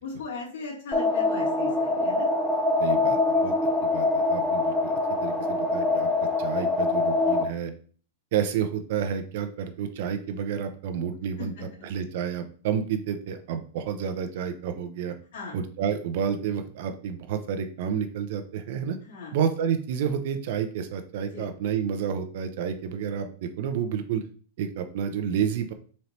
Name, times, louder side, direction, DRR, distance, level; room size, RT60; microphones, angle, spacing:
voice 1, 0.0-2.3 3.3-3.4 11.4-11.8 15.3-15.5 19.0-19.3 21.3-21.5, left 4 dB, 70° left, -4 dB, 2.0 m, -38 dB
sound 1, 0.9-7.4, left 3 dB, 5° left, 0.7 m, -24 dB
voice 2, 2.8-3.5 3.8-4.9 5.2-6.1 6.4-7.7 8.3-15.1 15.5-19.0 19.3-24.2 24.6-25.7, right 8 dB, 60° right, 8 dB, 0.6 m, -30 dB
4.1 x 2.8 x 3.3 m, 0.43 s
hypercardioid pair, 120°, 0 cm